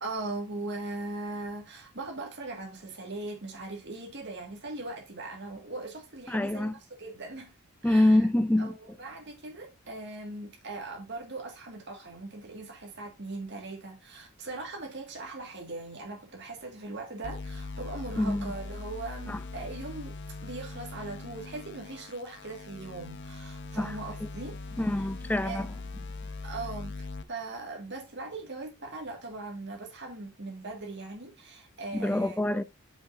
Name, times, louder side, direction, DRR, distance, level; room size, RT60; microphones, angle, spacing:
voice 1, 0.0-6.7 7.0-7.5 7.8-8.2 8.6-20.2 20.4-24.6 25.0-25.1 25.4-25.6 26.4-32.4, right 2 dB, 50° right, 1.9 m, -40 dB
voice 2, 6.3-6.8 7.8-8.7 18.2-18.5 19.3-19.4 23.7-23.9 24.8-25.7 31.9-32.6, left 1 dB, 5° left, 0.3 m, -25 dB
sound 1, 17.2-27.2, left 3 dB, 50° left, 0.6 m, -41 dB
8.8 x 5.6 x 2.6 m
head